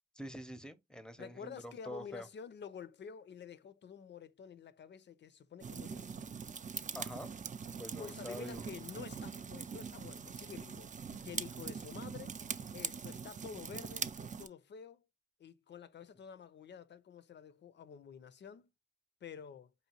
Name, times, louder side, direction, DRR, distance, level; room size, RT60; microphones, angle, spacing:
voice 1, 0.2-2.3 6.9-7.3 7.8-8.6, equal, 5° left, 0.6 m, -46 dB
voice 2, 1.2-6.1 8.0-10.9 11.2-12.4 12.7-14.1 14.4-15.0 15.4-18.7 19.2-19.7, left 7 dB, 70° left, 0.5 m, -49 dB
sound 1, 5.6-14.5, right 6 dB, 40° right, 0.4 m, -43 dB
4.9 x 2.8 x 2.8 m
cardioid pair, 70°, 19 cm